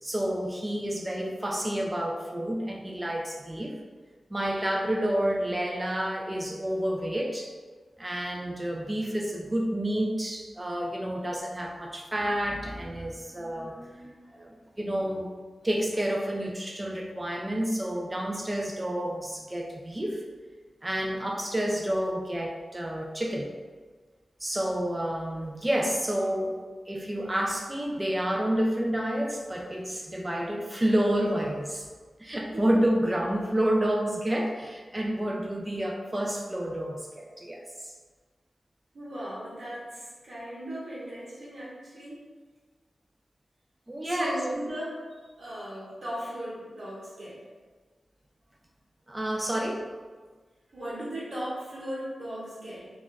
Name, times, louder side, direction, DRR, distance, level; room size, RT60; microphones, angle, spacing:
voice 1, 0.0-3.8 4.3-7.5 8.0-15.3 15.6-20.2 20.8-23.5 24.4-26.6 26.9-31.9 32.2-37.9 43.9-44.4 49.1-49.9, right 1 dB, 20° right, 1 dB, 0.3 m, -29 dB
voice 2, 38.9-42.2 44.0-45.0 45.4-47.4 50.7-53.0, equal, 55° right, -8 dB, 1.0 m, -37 dB
2.3 x 2.1 x 3.9 m, 1.4 s
wide cardioid pair, 105°, 0 cm